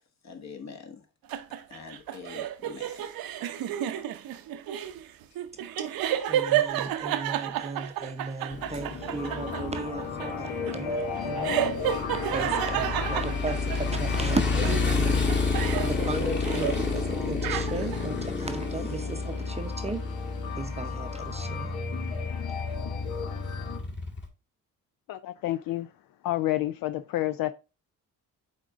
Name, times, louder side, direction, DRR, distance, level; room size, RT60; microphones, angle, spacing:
voice 1, 0.2-1.0 1.7-2.9 5.8-5.9, left 5 dB, 50° left, 1.6 m, -43 dB
sound 1, 1.3-14.3 14.6-16.9 17.2-18.0, right 11 dB, 75° right, 0.7 m, -31 dB
voice 2, 6.3-11.8 12.3-15.3 15.8-20.0 20.5-21.7, right 3 dB, 20° right, 0.6 m, -35 dB
sound 2, 8.4-23.8, left 5 dB, 85° left, 1.2 m, -37 dB
Motorcycle, 8.5-24.3, left 4 dB, 30° left, 1.7 m, -30 dB
voice 3, 25.1-25.9 26.2-27.5, left 15 dB, 70° left, 0.5 m, -29 dB
8.6 x 3.8 x 3.5 m
cardioid pair, 105°, 35 cm